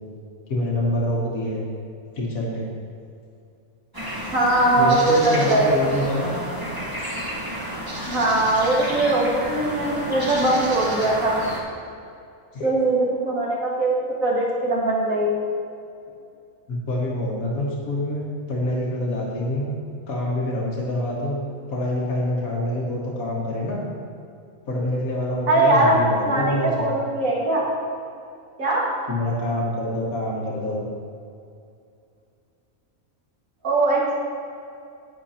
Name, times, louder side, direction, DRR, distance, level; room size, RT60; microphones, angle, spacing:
voice 1, 0.5-1.6 2.1-2.7 4.8-6.3 12.5-12.7 16.7-18.2 18.5-19.7 20.1-21.4 21.7-23.8 24.7-26.9 29.1-30.9, left 1 dB, 80° left, -4 dB, 2.0 m, -26 dB
sound 1, 3.9-11.6, equal, 15° right, 1.4 m, -31 dB
voice 2, 4.3-5.7 8.1-11.4 12.6-13.9 14.2-15.5 25.5-27.6 28.6-28.9 33.6-34.2, right 2 dB, 75° right, -4 dB, 2.3 m, -21 dB
10.5 x 9.5 x 2.9 m, 2.5 s
omnidirectional pair, 1.5 m